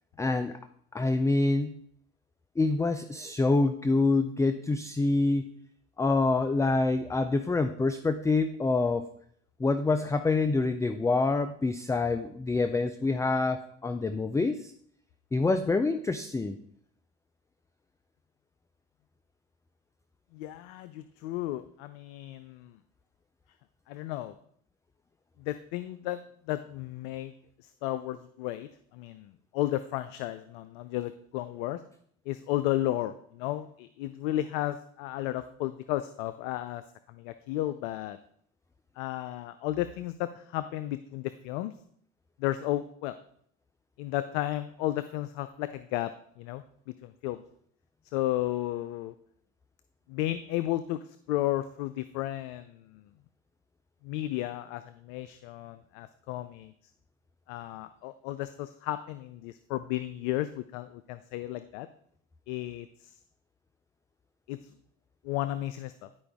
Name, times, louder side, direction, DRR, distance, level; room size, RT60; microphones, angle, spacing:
voice 1, 0.2-0.6 0.9-1.8 2.6-5.5 6.0-9.0 9.6-14.7 15.3-16.6, left 3 dB, 10° left, 9 dB, 0.3 m, -26 dB
voice 2, 20.3-22.8 23.9-24.3 25.4-27.3 27.6-31.8 32.3-36.8 37.1-38.2 39.0-41.7 42.4-43.2 44.0-46.1 46.4-46.6 47.0-47.4 48.1-49.1 50.1-53.0 54.0-56.7 57.5-61.9 62.5-63.1 64.5-64.7 65.2-66.1, left 14 dB, 75° left, 12 dB, 0.5 m, -33 dB
10.5 x 4.8 x 3.5 m, 0.65 s
hypercardioid pair, 75°, 38 cm